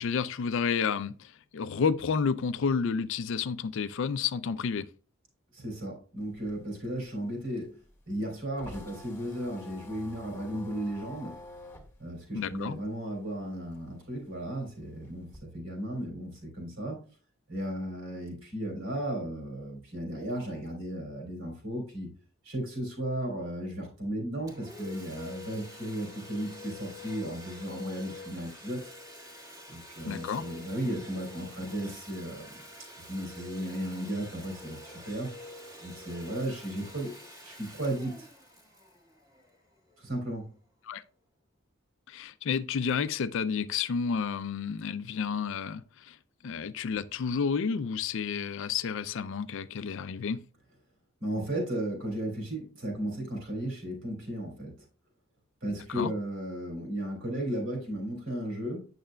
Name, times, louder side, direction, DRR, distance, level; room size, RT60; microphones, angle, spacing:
voice 1, 0.0-4.9 12.3-12.8 30.1-30.4 40.9-41.0 42.1-46.2 46.4-50.4 55.9-56.1, left 6 dB, 65° left, 0.4 m, -30 dB
voice 2, 5.5-7.8 8.1-11.4 12.0-17.0 17.5-22.1 22.4-28.9 29.7-32.6 33.0-35.3 35.8-37.1 37.4-38.3 40.0-40.5 51.2-54.7 55.6-58.8, right 1 dB, 65° right, 3.3 m, -35 dB
sound 1, 6.2-13.3 13.6-15.4, left 1 dB, 10° left, 1.5 m, -48 dB
Domestic sounds home sounds, 24.5-39.9, left 2 dB, 15° right, 1.7 m, -47 dB
8.8 x 6.5 x 2.2 m
head